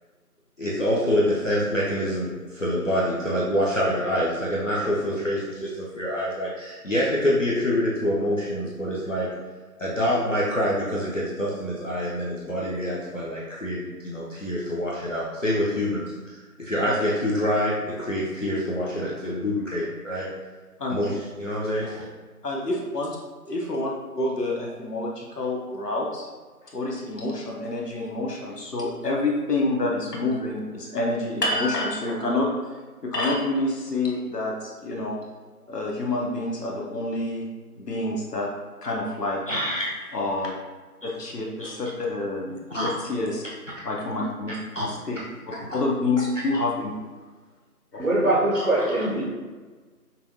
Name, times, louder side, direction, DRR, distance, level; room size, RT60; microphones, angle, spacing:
voice 1, 0.6-9.3 9.8-20.3 20.9-21.8 39.5-40.0 41.0-41.1 41.6-41.7 42.7-42.9 44.5-44.9 45.6-45.7 46.5-46.6 48.5-49.0, equal, 55° left, -6 dB, 0.6 m, -26 dB
voice 2, 22.4-23.1 23.5-23.9 24.2-26.3 26.6-32.5 33.0-35.2 35.7-37.4 37.8-38.5 38.8-39.4 40.1-40.5 41.0-43.4 43.8-45.2 45.7-46.9 47.9-48.1, left 2 dB, 90° left, -2 dB, 0.9 m, -27 dB
voice 3, 48.0-49.2, right 1 dB, 60° right, -7 dB, 0.9 m, -22 dB
5.5 x 2.3 x 2.7 m, 1.4 s
figure-of-eight pair, 175°, 46 cm